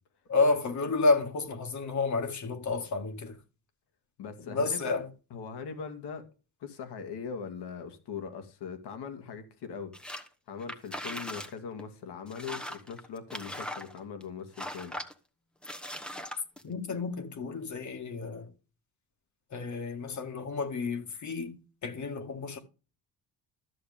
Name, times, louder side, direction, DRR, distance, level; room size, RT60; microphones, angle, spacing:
voice 1, 0.3-3.4 4.4-5.1 16.6-18.5 19.5-22.6, left 3 dB, 45° left, 1.9 m, -30 dB
voice 2, 4.2-5.0 5.3-6.2 6.6-14.9, left 6 dB, 75° left, 2.4 m, -41 dB
sound 1, 9.9-10.3 10.6-11.5 11.8-11.9 12.3-14.2 14.6-15.1 15.6-16.6, equal, ahead, 1.1 m, -39 dB
13.5 x 7.0 x 3.5 m
cardioid pair, 120°, 40 cm